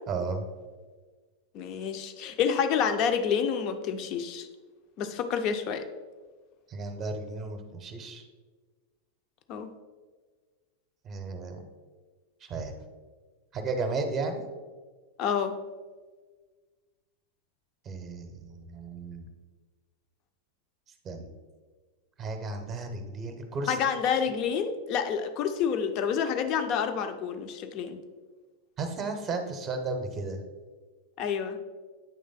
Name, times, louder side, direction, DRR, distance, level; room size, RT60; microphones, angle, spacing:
voice 1, 0.1-0.5 6.7-8.2 11.0-11.6 12.4-12.7 13.5-14.4 17.8-19.3 21.0-21.3 22.2-23.8 28.8-30.4, right 3 dB, 30° right, 5 dB, 0.8 m, -34 dB
voice 2, 1.5-4.5 5.0-5.8 9.5-9.7 15.2-15.6 23.7-28.0 31.2-31.6, left 7 dB, 40° left, 8 dB, 0.6 m, -28 dB
8.6 x 3.3 x 4.0 m, 1.4 s
figure-of-eight pair, 90°, 0 cm